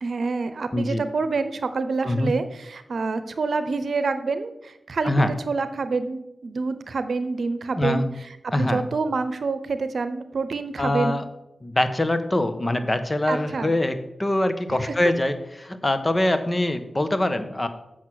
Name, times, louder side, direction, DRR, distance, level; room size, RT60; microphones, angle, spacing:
voice 1, 0.0-5.1 5.5-8.1 8.4-11.2 13.3-13.8, right 4 dB, 75° right, 11 dB, 0.8 m, -27 dB
voice 2, 0.7-1.0 2.0-2.3 5.0-5.3 7.8-8.0 8.5-8.8 10.8-11.2 11.6-17.7, left 1 dB, 30° left, 10 dB, 1.2 m, -23 dB
8.1 x 6.2 x 6.3 m, 0.89 s
cardioid pair, 50°, 0 cm